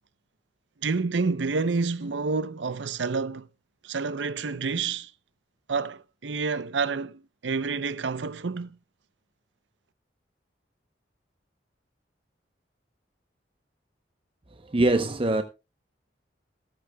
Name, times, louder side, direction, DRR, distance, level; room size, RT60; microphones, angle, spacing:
voice 1, 0.8-3.5 3.8-5.1 5.7-8.7, right 4 dB, 85° right, 0.6 m, -28 dB
voice 2, 14.5-15.4, right 2 dB, 30° right, 0.8 m, -23 dB
15.0 x 13.5 x 2.3 m
head